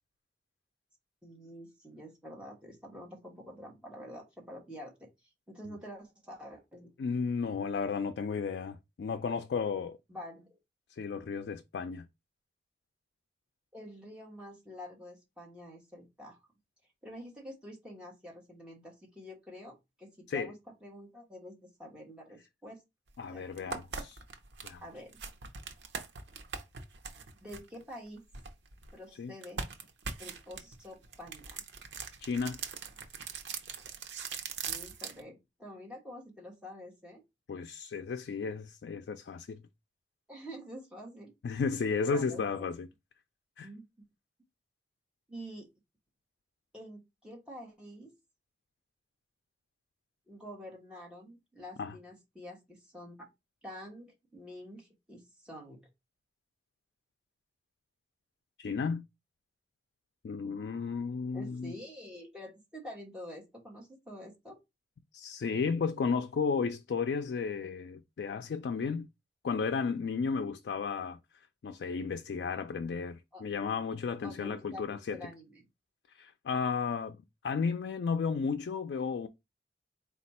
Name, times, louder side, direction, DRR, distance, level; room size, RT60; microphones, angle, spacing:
voice 1, 1.2-6.9 10.1-10.6 13.7-16.4 17.0-20.5 20.8-22.8 23.2-23.8 24.8-25.2 27.4-28.2 28.9-29.6 30.2-31.7 34.7-37.2 40.3-41.6 42.1-42.7 43.6-43.9 45.3-45.7 46.7-48.1 50.3-53.3 53.6-55.8 61.3-64.6 73.3-73.4 74.2-75.7, equal, 5° right, 1.2 m, -47 dB
voice 2, 7.0-10.0 11.0-12.1 20.3-20.5 23.2-24.2 24.6-24.8 29.2-29.3 32.2-32.6 37.5-39.6 41.4-42.9 43.6-43.7 51.8-51.9 58.6-59.1 60.2-61.7 65.1-69.1 69.4-71.2 71.6-75.2 76.1-77.2 77.4-79.3, left 5 dB, 75° left, 0.3 m, -33 dB
sound 1, 23.1-23.2 23.6-28.9 29.4-35.2, right 5 dB, 90° right, 0.7 m, -41 dB
4.2 x 2.4 x 4.1 m
head